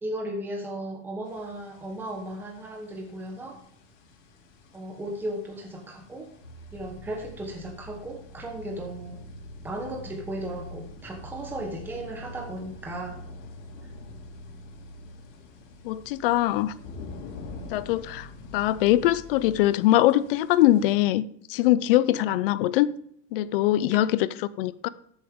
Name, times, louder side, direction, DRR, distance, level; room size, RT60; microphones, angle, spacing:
voice 1, 0.0-3.6 4.7-6.3 6.7-9.2 9.6-13.2, right 1 dB, 5° right, 1.0 m, -35 dB
sound 1, 1.2-21.0, left 3 dB, 70° left, 3.0 m, -48 dB
sound 2, 6.4-19.6, equal, 30° left, 3.8 m, -46 dB
voice 2, 15.8-16.7 17.7-18.3 18.5-21.2 21.5-22.9 23.3-24.3 24.6-24.9, left 14 dB, 50° left, 0.5 m, -22 dB
12.5 x 7.2 x 3.6 m
supercardioid pair, 165°, 37 cm